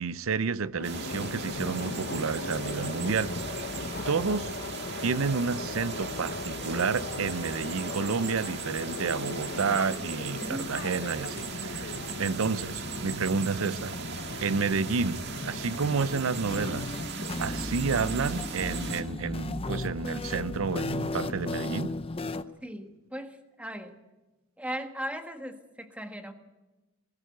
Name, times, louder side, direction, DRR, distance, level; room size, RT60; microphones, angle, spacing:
voice 1, 0.0-3.7 4.1-4.5 5.0-13.9 14.4-17.0 17.4-21.9, right 5 dB, 80° right, 0.6 m, -30 dB
sound 1, 0.8-17.1, left 3 dB, 50° left, 0.9 m, -37 dB
sound 2, 0.8-19.0, right 6 dB, 55° right, 1.7 m, -39 dB
voice 2, 10.3-10.8 22.6-23.9 24.6-26.3, equal, 5° right, 1.5 m, -38 dB
Script Node I.a, 16.4-22.4, left 2 dB, 25° left, 0.6 m, -34 dB
20.5 x 15.0 x 9.3 m
head